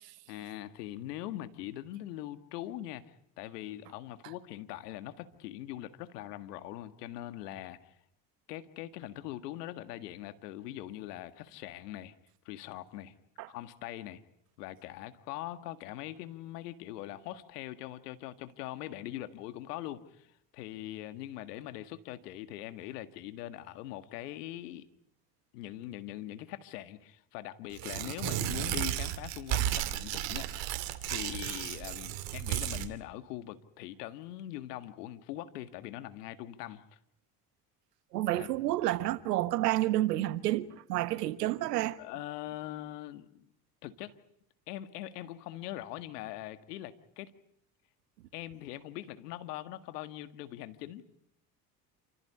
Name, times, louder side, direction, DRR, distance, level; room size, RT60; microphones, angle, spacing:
voice 1, 0.3-7.9 8.5-12.1 12.5-13.1 13.5-14.2 14.6-20.3 20.5-24.9 25.5-37.0 38.4-38.5 42.0-43.5 43.8-44.1 44.7-47.3 48.3-51.0, left 14 dB, 85° left, 1.8 m, -42 dB
Tearing, 27.7-32.9, right 12 dB, 70° right, 2.6 m, -34 dB
voice 2, 38.1-42.0, right 15 dB, 90° right, 1.4 m, -30 dB
28.5 x 15.0 x 9.9 m
hypercardioid pair, 75°, 46 cm